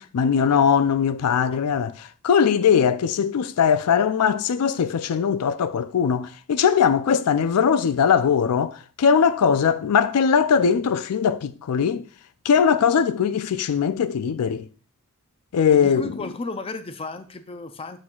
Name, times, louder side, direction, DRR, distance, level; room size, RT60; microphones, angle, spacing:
voice 1, 0.0-12.0 12.5-14.7 15.5-16.1, left 7 dB, 85° left, 0.4 m, -20 dB
voice 2, 15.7-18.0, left 2 dB, 25° left, 0.5 m, -33 dB
7.5 x 6.1 x 2.3 m
head